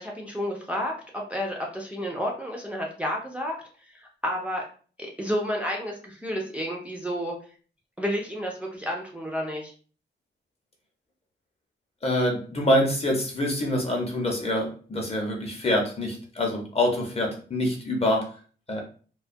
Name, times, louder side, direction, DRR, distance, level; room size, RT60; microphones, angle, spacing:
voice 1, 0.0-3.6 4.2-4.6 5.0-7.3 8.0-9.7, equal, 5° right, -1 dB, 0.4 m, -30 dB
voice 2, 12.0-18.3 18.7-18.8, left 1 dB, 30° left, 0 dB, 0.7 m, -25 dB
2.2 x 2.1 x 2.5 m, 0.40 s
wide cardioid pair, 140°, 20 cm